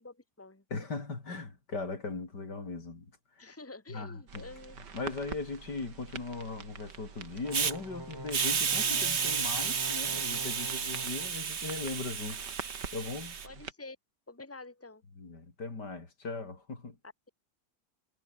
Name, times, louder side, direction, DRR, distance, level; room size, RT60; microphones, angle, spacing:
voice 1, 0.0-0.6 3.4-4.8 8.7-9.5 13.4-14.0 14.3-15.0, left 3 dB, 10° left, 2.5 m, -48 dB
voice 2, 0.7-3.6 3.9-4.5 4.9-12.4 12.9-13.4 15.2-17.0, left 3 dB, 75° left, 4.6 m, -39 dB
sound 1, 4.3-13.7, right 7 dB, 80° right, 2.5 m, -47 dB
sound 2, 7.4-11.3, right 1 dB, 10° right, 2.8 m, -45 dB
Hiss, 7.5-7.7 8.3-13.5, right 6 dB, 45° right, 1.4 m, -32 dB
omnidirectional pair, 1.8 m